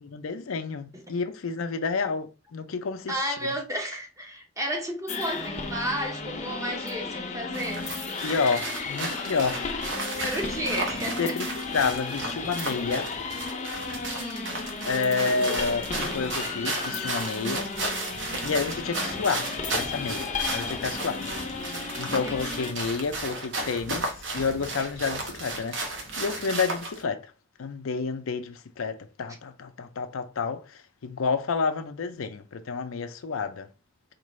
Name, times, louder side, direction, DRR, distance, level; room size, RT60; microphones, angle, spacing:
voice 1, 0.0-3.5 8.2-10.4 11.2-13.1 14.8-17.7 18.4-21.3 22.0-27.3 27.6-33.7, left 5 dB, 80° left, 0.5 m, -30 dB
voice 2, 3.1-7.9 10.2-11.4 14.0-14.7 22.1-22.4, right 1 dB, 15° right, 0.7 m, -32 dB
sound 1, 5.1-22.7, left 4 dB, 35° left, 0.5 m, -34 dB
sound 2, 7.5-27.0, right 2 dB, 60° right, 0.9 m, -34 dB
4.4 x 2.5 x 3.1 m
head